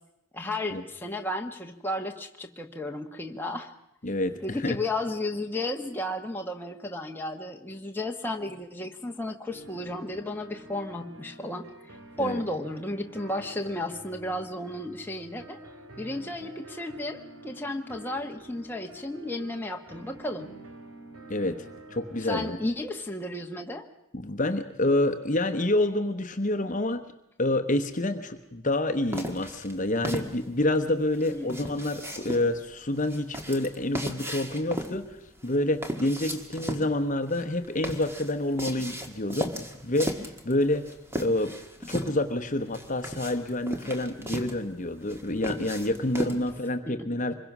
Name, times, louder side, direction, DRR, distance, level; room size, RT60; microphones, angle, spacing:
voice 1, 0.3-3.7 4.4-15.6 16.0-20.5 22.2-23.8 31.3-31.8, left 1 dB, 10° left, 2 dB, 1.2 m, -33 dB
voice 2, 4.0-4.8 12.2-12.4 21.3-22.6 24.1-27.0 27.4-40.9 41.2-41.5 41.9-47.3, left 1 dB, 35° left, 8 dB, 1.1 m, -28 dB
sound 1, 9.5-22.7, right 2 dB, 80° right, 3.0 m, -48 dB
sound 2, 29.1-46.6, equal, 10° right, 1.6 m, -37 dB
25.5 x 22.0 x 6.1 m, 0.86 s
head